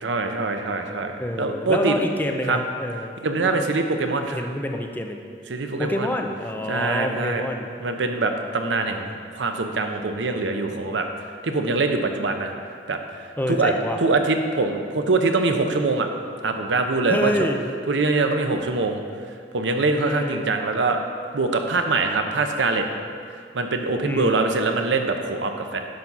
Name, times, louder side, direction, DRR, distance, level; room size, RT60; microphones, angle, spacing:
voice 1, 0.0-2.0 2.5-2.6 3.2-4.4 5.5-6.1 6.7-7.5 7.8-9.1 9.3-11.0 11.4-12.5 12.9-13.7 14.0-16.1 16.4-17.5 17.9-19.0 19.5-21.0 21.3-22.9 23.5-25.8, right 3 dB, 75° right, 5 dB, 0.7 m, -23 dB
voice 2, 1.2-3.1 3.4-3.7 4.3-5.2 5.8-7.7 13.4-14.0 17.1-17.6 20.0-20.5 24.0-24.4, left 1 dB, 10° left, 3 dB, 0.5 m, -27 dB
10.5 x 4.1 x 5.9 m, 2.2 s
head